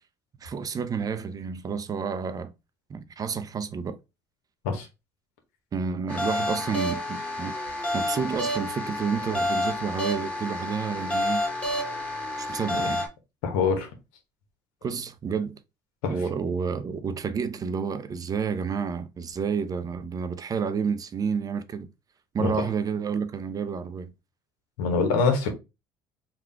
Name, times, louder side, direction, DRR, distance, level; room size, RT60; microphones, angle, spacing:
voice 1, 0.4-2.5 2.9-4.0 5.7-7.5 7.9-11.4 12.4-13.0 14.8-15.6 16.1-21.9 22.3-24.1, right 6 dB, 35° right, 0.5 m, -30 dB
sound 1, 6.1-13.1, left 1 dB, 10° left, 1.2 m, -29 dB
voice 2, 13.4-13.9 16.0-16.1 22.4-22.6 24.8-25.5, left 5 dB, 85° left, 1.0 m, -24 dB
3.7 x 2.4 x 3.3 m
supercardioid pair, 80°, 11 cm